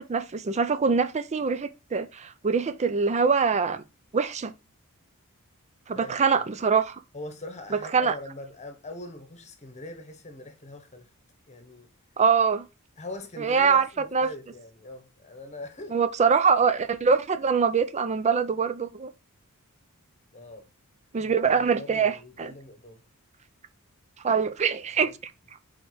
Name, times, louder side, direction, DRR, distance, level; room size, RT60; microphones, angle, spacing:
voice 1, 0.0-3.8 4.1-4.5 5.9-7.0 7.9-8.2 12.2-12.7 13.4-13.9 14.1-14.3 15.9-19.1 21.1-22.5 24.2-25.3, right 5 dB, 30° right, 0.4 m, -24 dB
voice 2, 5.9-6.4 7.1-11.1 11.5-11.9 13.0-16.0 20.3-20.7 21.2-23.0, left 2 dB, 30° left, 1.1 m, -41 dB
4.6 x 4.4 x 4.7 m
head